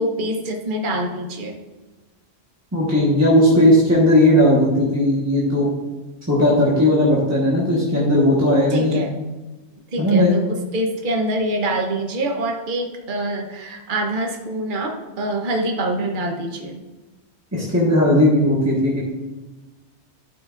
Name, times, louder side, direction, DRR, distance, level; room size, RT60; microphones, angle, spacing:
voice 1, 0.0-1.5 8.7-9.1 9.9-16.8, right 1 dB, 50° right, 2 dB, 1.1 m, -25 dB
voice 2, 2.7-5.7 6.3-9.0 10.0-10.3 17.5-19.0, left 1 dB, 15° right, -6 dB, 1.4 m, -16 dB
12.0 x 6.0 x 2.6 m, 1.2 s
omnidirectional pair, 1.2 m